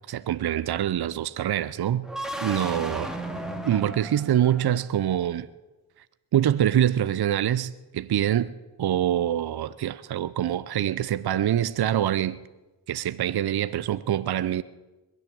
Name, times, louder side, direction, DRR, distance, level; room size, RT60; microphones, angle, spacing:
voice 1, 0.1-2.1 2.4-3.1 3.6-5.5 6.3-8.5 8.8-12.4 12.9-14.6, right 11 dB, 55° right, 0.7 m, -25 dB
sound 1, 2.0-5.0, right 1 dB, ahead, 2.7 m, -35 dB
21.5 x 7.8 x 7.8 m
supercardioid pair, 40°, 45 cm